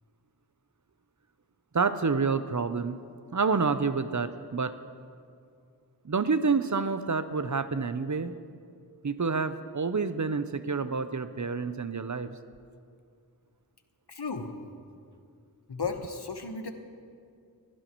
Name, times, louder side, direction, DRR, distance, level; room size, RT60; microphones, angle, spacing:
voice 1, 1.7-3.0 3.3-4.8 6.0-8.3 9.0-12.4, right 4 dB, 45° right, 11 dB, 0.6 m, -28 dB
voice 2, 14.1-14.5 15.7-16.7, left 4 dB, 75° left, 5 dB, 1.2 m, -34 dB
22.0 x 15.5 x 3.1 m, 2.3 s
wide cardioid pair, 50°, 40 cm